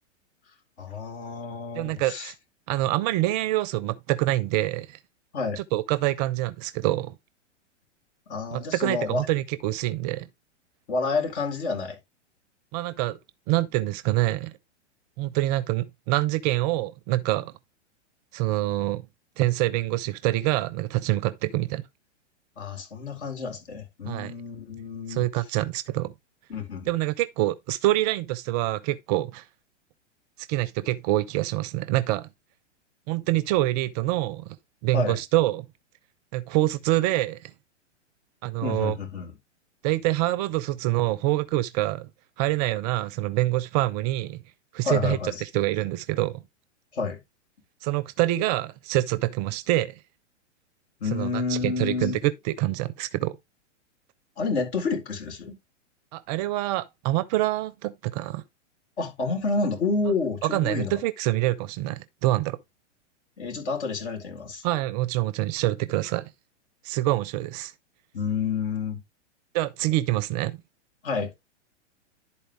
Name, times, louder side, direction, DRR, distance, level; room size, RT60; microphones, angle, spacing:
voice 1, 0.8-2.3 5.3-5.6 8.3-9.3 10.9-12.0 22.6-25.2 26.5-26.9 34.9-35.2 38.6-39.3 44.8-45.4 46.9-47.2 51.0-52.2 54.4-55.6 59.0-61.0 63.4-64.6 68.1-69.0 71.0-71.3, left 4 dB, 65° left, 4.3 m, -29 dB
voice 2, 1.7-2.3 2.7-5.0 5.6-7.2 8.5-10.3 12.7-13.2 13.5-14.6 15.2-17.5 18.3-19.1 19.4-21.8 24.1-24.3 25.1-26.1 26.9-29.4 30.5-32.3 33.1-34.6 34.8-35.7 36.3-37.5 38.4-39.0 39.8-42.1 42.4-44.4 44.7-46.4 47.8-50.0 51.1-53.4 56.1-58.4 60.4-62.6 64.6-66.3 66.8-67.7 69.5-70.6, right 16 dB, 35° right, 0.5 m, -26 dB
11.5 x 4.3 x 3.4 m
hypercardioid pair, 120°, 37 cm